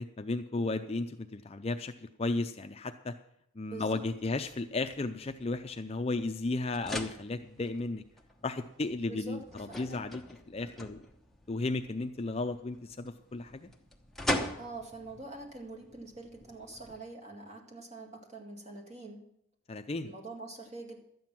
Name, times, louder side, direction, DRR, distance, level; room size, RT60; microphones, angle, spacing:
voice 1, 0.0-3.1 3.6-8.0 8.4-10.2 10.5-11.0 11.5-13.7 19.7-20.1, left 2 dB, 30° left, 7 dB, 0.4 m, -34 dB
voice 2, 3.7-4.0 9.1-10.0 14.6-19.2 20.0-21.0, right 3 dB, 30° right, 0 dB, 2.1 m, -45 dB
sound 1, 4.1-17.0, left 1 dB, ahead, 0.9 m, -42 dB
12.5 x 9.3 x 5.9 m, 0.75 s
head